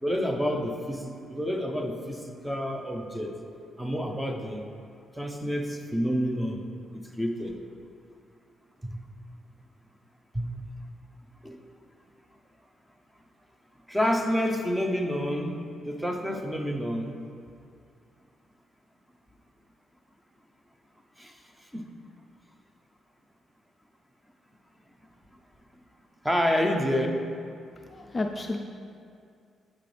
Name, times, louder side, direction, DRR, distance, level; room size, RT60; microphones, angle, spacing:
voice 1, 0.0-3.4 3.8-4.7 5.1-6.7 6.9-7.6 8.8-9.0 10.3-10.5 11.4-11.6 13.9-17.2 21.2-21.9 26.2-27.2, equal, 5° right, 4 dB, 0.7 m, -29 dB
voice 2, 27.9-28.6, left 2 dB, 25° left, 3 dB, 0.4 m, -31 dB
8.4 x 6.6 x 3.4 m, 2.4 s
cardioid pair, 100°, 0 cm